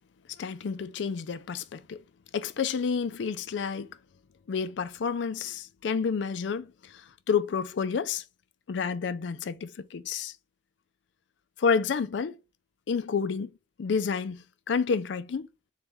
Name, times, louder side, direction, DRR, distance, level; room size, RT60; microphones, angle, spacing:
voice 1, 0.4-2.0 2.3-3.9 4.5-6.9 7.3-8.2 8.7-10.3 11.6-12.4 12.9-13.5 13.8-15.5, left 6 dB, 75° left, 0.4 m, -29 dB
4.0 x 3.1 x 3.4 m
head